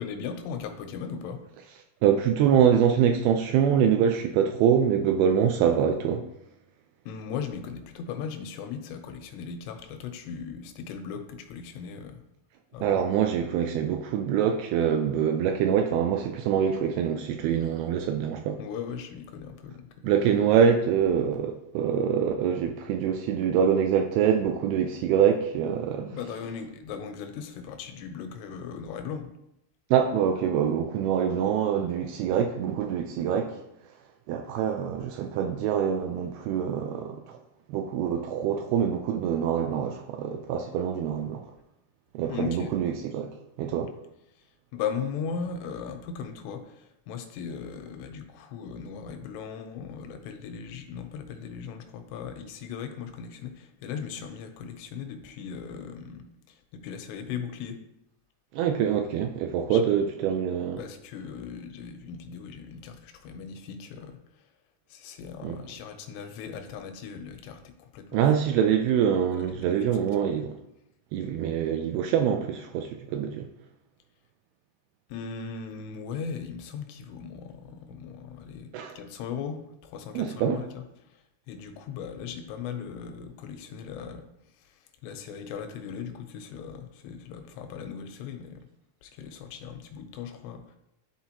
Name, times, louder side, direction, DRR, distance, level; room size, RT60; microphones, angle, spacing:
voice 1, 0.0-1.4 7.1-12.2 12.7-13.0 18.6-20.1 26.1-29.3 42.2-42.7 44.3-57.8 59.7-59.8 60.8-64.5 64.9-68.3 68.6-68.7 69.4-69.9 75.1-88.7 89.0-90.8, left 6 dB, 90° left, 6 dB, 2.9 m, -38 dB
voice 2, 2.0-6.3 12.8-18.6 20.0-26.2 29.9-33.6 34.3-37.4 37.7-41.5 42.1-43.3 43.6-43.9 58.5-60.8 65.4-65.6 68.1-70.5 71.1-73.5 78.7-79.0 80.2-80.6, right 8 dB, 80° right, 4 dB, 2.3 m, -25 dB
11.0 x 4.3 x 2.9 m, 0.82 s
omnidirectional pair, 4.8 m